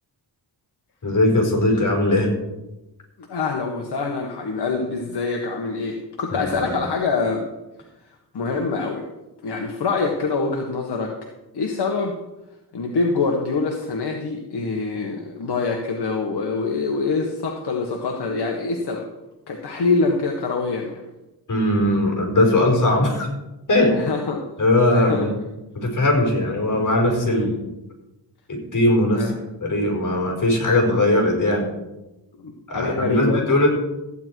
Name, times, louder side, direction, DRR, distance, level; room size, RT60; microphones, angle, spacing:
voice 1, 1.0-2.3 6.3-6.7 21.5-23.3 23.7-23.9 24.6-25.3 25.7-27.6 28.5-29.2 29.6-31.7 32.7-33.7, left 1 dB, 45° left, 1 dB, 4.6 m, -19 dB
voice 2, 3.2-7.5 8.3-9.1 9.4-11.1 11.5-12.2 12.7-19.1 19.5-21.0 23.9-24.4 24.9-25.3 27.2-27.5 29.1-29.4 32.4-33.5, left 4 dB, 65° left, 1 dB, 1.5 m, -25 dB
15.0 x 9.7 x 4.7 m, 1.0 s
wide cardioid pair, 115°, 43 cm